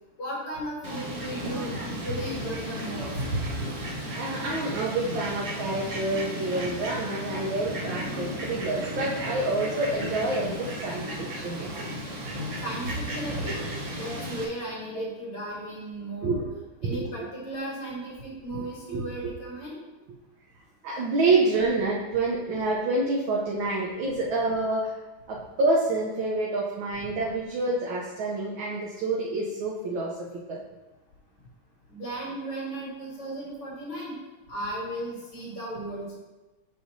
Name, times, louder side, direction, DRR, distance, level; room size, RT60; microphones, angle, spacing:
voice 1, 0.2-3.2 12.6-13.6 13.9-16.4 16.8-19.8 31.9-34.2 34.5-36.2, right 1 dB, 90° left, -5 dB, 2.9 m, -35 dB
Fowl, 0.8-14.4, equal, 50° right, 0.9 m, -34 dB
voice 2, 4.1-11.7 16.2-16.4 17.0-17.1 18.9-19.1 20.8-24.9 25.3-30.6, right 2 dB, 70° right, -3 dB, 1.4 m, -27 dB
6.6 x 6.1 x 2.6 m, 1.1 s
omnidirectional pair, 2.4 m